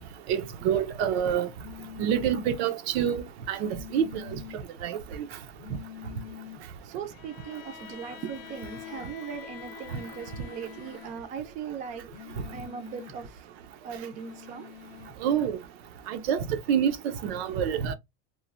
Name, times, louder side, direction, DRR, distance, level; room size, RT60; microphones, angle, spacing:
voice 1, 0.3-1.5 2.0-4.1 4.8-5.0 15.2-15.6 16.1-17.9, right 8 dB, 90° right, 0.6 m, -27 dB
sound 1, 1.6-2.6 3.6-4.6 5.6-6.6 8.1-9.2 10.1-11.2 12.1-13.2 14.1-15.2, left 12 dB, 45° left, 0.5 m, -46 dB
voice 2, 6.8-12.1 12.5-13.4 13.8-14.7, right 7 dB, 25° right, 0.4 m, -39 dB
Bowed string instrument, 7.1-11.4, left 11 dB, 85° left, 0.7 m, -46 dB
3.1 x 2.0 x 2.4 m
supercardioid pair, 160°, 31 cm